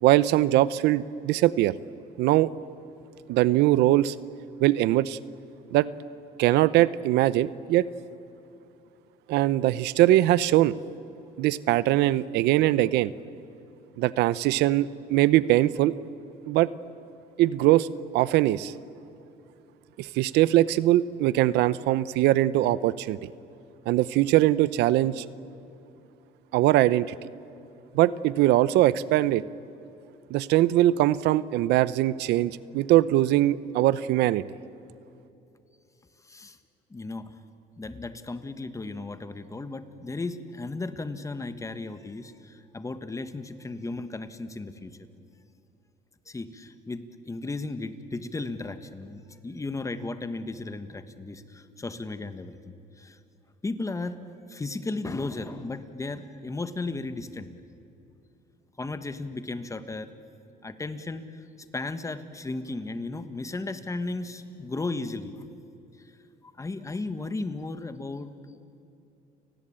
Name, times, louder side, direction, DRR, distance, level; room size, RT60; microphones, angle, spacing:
voice 1, 0.0-1.7 2.2-2.5 3.3-4.1 4.6-5.2 5.7-5.9 6.4-7.8 9.3-10.7 11.4-13.1 14.0-15.9 16.5-16.7 17.4-17.9 18.1-18.7 20.0-23.3 23.9-25.2 26.5-27.1 27.9-29.4 30.3-34.4, right 15 dB, 85° right, 18 dB, 0.7 m, -21 dB
voice 2, 36.2-36.6 36.9-37.3 37.8-45.0 46.3-53.2 53.6-54.2 54.5-57.5 58.8-60.1 60.6-61.4 61.7-65.4 66.4-68.3, left 3 dB, 20° left, 11 dB, 1.5 m, -35 dB
30.0 x 19.0 x 8.8 m, 2.7 s
cardioid pair, 110°, 17 cm